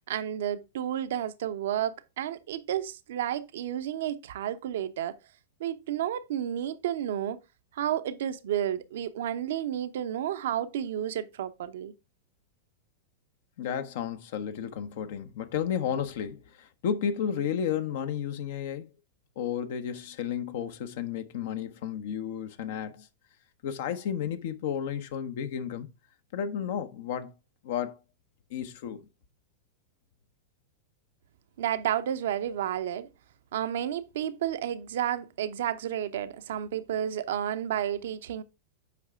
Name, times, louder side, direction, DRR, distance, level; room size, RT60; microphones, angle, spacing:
voice 1, 0.1-5.1 5.6-7.4 7.7-11.9 31.6-33.1 33.5-38.4, right 10 dB, 55° right, 0.8 m, -31 dB
voice 2, 13.6-18.9 19.4-23.1 23.6-25.9 26.3-27.3 27.6-28.0 28.5-29.0, left 8 dB, 55° left, 1.0 m, -32 dB
8.3 x 5.6 x 3.6 m
figure-of-eight pair, 95°, 0 cm